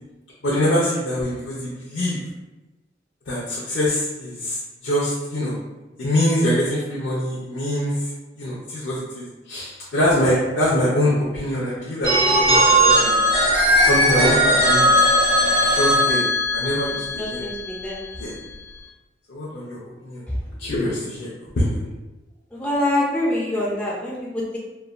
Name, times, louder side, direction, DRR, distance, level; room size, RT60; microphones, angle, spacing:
voice 1, 0.4-2.2 3.3-5.5 6.0-8.1 8.4-13.2 13.8-14.9 15.6-16.2 16.5-17.5 18.2-18.3 19.3-20.2 20.6-21.3 21.6-21.9, left 1 dB, 70° left, -7 dB, 0.6 m, -24 dB
Telephone, 12.0-17.8, equal, 60° right, 1.4 m, -18 dB
voice 2, 17.2-18.0 22.5-24.6, left 1 dB, 5° left, -5 dB, 0.4 m, -25 dB
3.1 x 2.2 x 2.4 m, 1.1 s
head